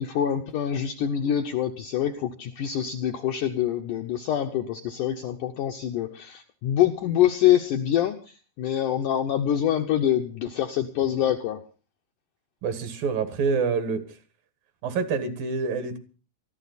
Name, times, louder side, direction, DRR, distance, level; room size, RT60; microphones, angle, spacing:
voice 1, 0.0-11.6, left 10 dB, 75° left, 4 dB, 1.9 m, -25 dB
voice 2, 12.6-14.2 14.8-16.0, right 5 dB, 65° right, 11 dB, 3.1 m, -27 dB
21.0 x 14.0 x 4.1 m, 0.34 s
omnidirectional pair, 4.7 m